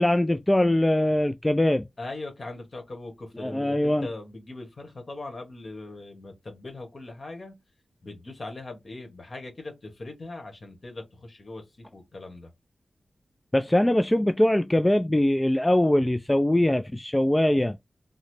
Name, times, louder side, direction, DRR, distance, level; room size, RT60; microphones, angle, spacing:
voice 1, 0.0-1.8 3.4-4.1 13.5-17.8, left 1 dB, 15° left, 0.3 m, -22 dB
voice 2, 2.0-7.5 8.0-12.5, left 2 dB, 55° left, 1.5 m, -40 dB
3.7 x 2.1 x 3.2 m
cardioid pair, 50°, 0 cm